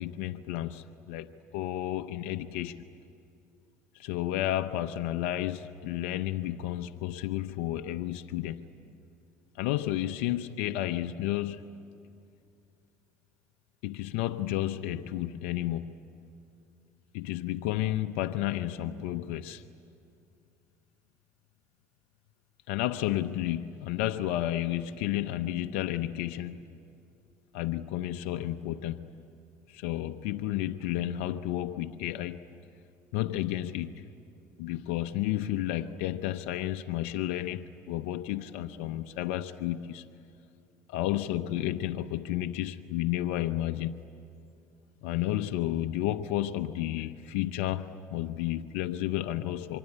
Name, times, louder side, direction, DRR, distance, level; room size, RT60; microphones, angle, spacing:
voice 1, 0.0-2.7 3.9-8.6 9.6-11.6 13.8-15.9 17.1-19.6 22.7-26.6 27.5-29.0 29.7-32.4 33.1-34.0 34.6-40.0 40.9-44.0 45.0-49.8, left 13 dB, 80° left, 0.8 m, -32 dB
25.0 x 24.0 x 10.0 m
supercardioid pair, 85°, 7 cm